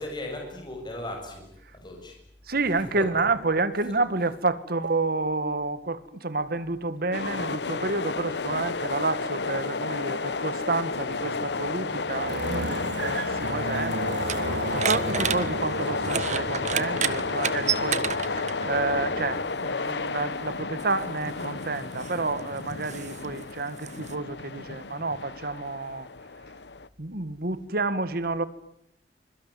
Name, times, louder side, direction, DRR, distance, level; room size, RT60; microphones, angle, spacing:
voice 1, 0.0-1.5 1.7-2.1 3.0-3.2, left 1 dB, 25° left, 7.4 m, -36 dB
voice 2, 2.5-14.2 14.7-26.1 27.0-28.4, right 3 dB, 60° right, 1.9 m, -29 dB
sound 1, 7.1-26.9, left 4 dB, 70° left, 1.1 m, -32 dB
sound 2, 10.9-19.5, right 2 dB, 80° right, 1.7 m, -35 dB
sound 3, 13.4-18.8 19.9-20.0 20.8-24.1, right 7 dB, 45° right, 1.4 m, -32 dB
25.5 x 23.5 x 9.5 m
head